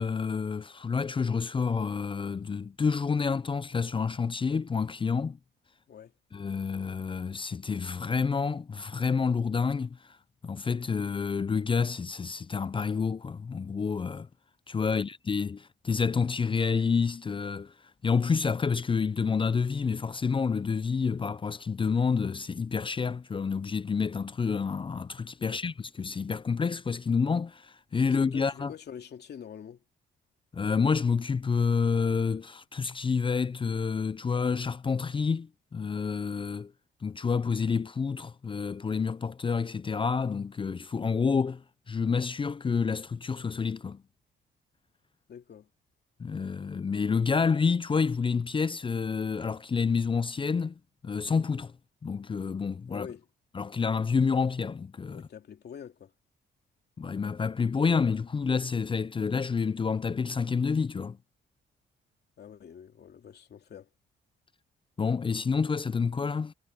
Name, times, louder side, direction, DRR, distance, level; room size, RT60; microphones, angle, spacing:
voice 1, 0.0-5.4 6.3-10.2 10.4-14.3 14.7-17.7 18.0-28.7 30.5-36.7 37.0-44.0 46.2-50.7 51.0-51.7 52.0-53.1 53.5-55.2 57.0-61.2 65.0-66.5, left 5 dB, 25° left, 0.5 m, -28 dB
voice 2, 28.1-29.8 45.3-45.7 52.9-53.3 55.1-56.1 62.4-63.9, left 8 dB, 55° left, 2.9 m, -45 dB
cardioid pair, 90°, 20 cm